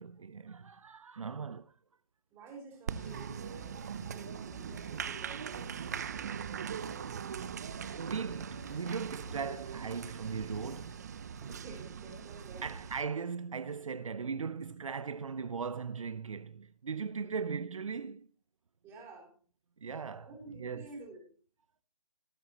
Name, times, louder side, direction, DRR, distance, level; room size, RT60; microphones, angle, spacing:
voice 1, 0.0-1.7 7.9-11.1 12.6-18.3 19.8-20.3 20.6-20.9, right 5 dB, 65° right, 0.7 m, -38 dB
voice 2, 2.3-6.0 11.4-12.7 17.1-17.4 18.8-19.3 20.3-21.3, right 2 dB, 15° right, 3.8 m, -51 dB
Applause, 2.9-13.0, right 7 dB, 30° right, 0.5 m, -41 dB
sound 1, 3.0-11.8, left 3 dB, 35° left, 2.3 m, -55 dB
18.0 x 8.8 x 2.9 m
figure-of-eight pair, 155°, 18 cm